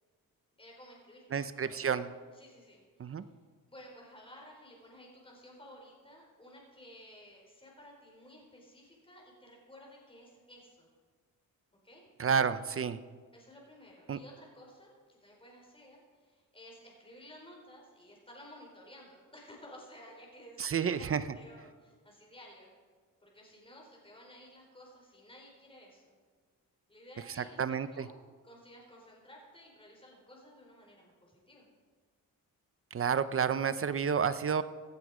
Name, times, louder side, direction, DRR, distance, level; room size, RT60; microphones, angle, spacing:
voice 1, 0.6-3.2 3.7-10.9 11.8-12.0 13.3-22.7 23.2-26.2 26.9-28.1 28.4-31.7, equal, 15° left, -1 dB, 4.7 m, -54 dB
voice 2, 1.3-2.1 3.0-3.2 12.2-13.0 14.1-14.2 20.6-21.2 27.3-28.1 32.9-34.6, right 6 dB, 40° right, 13 dB, 0.7 m, -30 dB
17.0 x 12.5 x 5.0 m, 1.5 s
cardioid pair, 95°, 34 cm